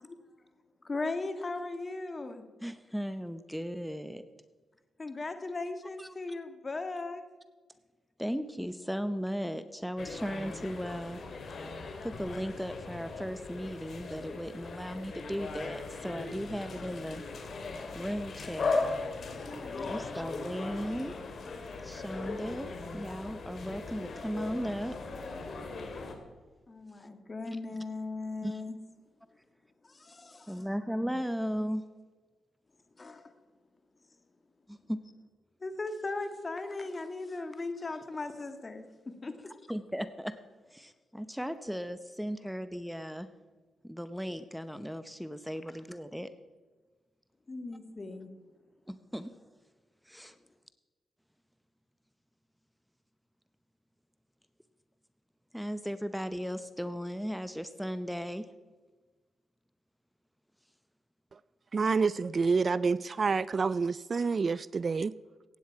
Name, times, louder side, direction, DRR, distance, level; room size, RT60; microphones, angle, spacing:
voice 1, 0.8-2.4 5.0-7.2 19.6-20.0 26.7-28.8 29.8-30.8 33.0-33.3 35.6-39.5 47.5-48.3, left 3 dB, 35° left, 8 dB, 1.7 m, -38 dB
voice 2, 2.6-4.2 6.0-6.1 8.2-11.2 12.0-17.2 17.9-18.8 19.9-21.2 21.8-24.9 28.4-28.6 30.5-31.8 34.7-35.0 39.7-40.3 40.7-43.3 43.8-46.3 48.9-49.3 50.1-50.3 55.5-58.5, equal, ahead, 12 dB, 0.8 m, -36 dB
sound 1, 10.0-26.1, left 3 dB, 60° left, 2.2 m, -38 dB
voice 3, 61.7-65.1, right 4 dB, 45° right, 19 dB, 0.3 m, -28 dB
15.5 x 9.5 x 4.7 m, 1.3 s
cardioid pair, 60°, 0 cm